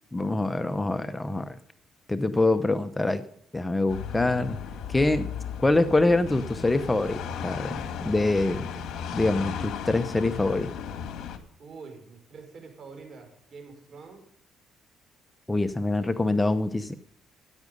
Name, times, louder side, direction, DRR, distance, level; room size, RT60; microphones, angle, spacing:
voice 1, 0.1-1.6 2.1-3.2 3.5-4.6 4.9-5.3 5.6-8.6 9.1-10.7 15.5-16.9, left 2 dB, 15° left, 11 dB, 0.8 m, -25 dB
sound 1, 3.9-11.4, left 7 dB, 70° left, 2.0 m, -35 dB
voice 2, 11.6-14.3 15.9-16.6, right 4 dB, 45° right, 5 dB, 5.5 m, -46 dB
13.5 x 10.5 x 5.3 m, 0.67 s
cardioid pair, 95°, 0 cm